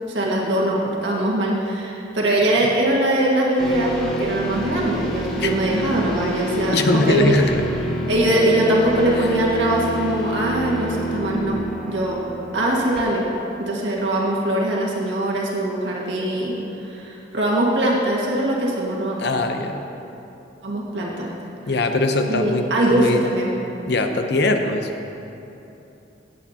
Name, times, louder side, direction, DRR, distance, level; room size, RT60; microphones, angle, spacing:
voice 1, 0.1-6.8 7.1-7.3 8.1-11.6 11.9-12.2 12.5-13.3 13.6-19.2 20.6-21.3 22.3-23.5, right 1 dB, 75° right, -4 dB, 1.8 m, -21 dB
sound 1, 3.6-13.6, right 1 dB, 5° left, 2.3 m, -29 dB
voice 2, 6.7-7.6 9.2-9.3 19.2-19.8 21.7-23.2 23.9-24.9, left 2 dB, 65° left, 5 dB, 0.8 m, -21 dB
17.0 x 8.4 x 2.9 m, 2.9 s
head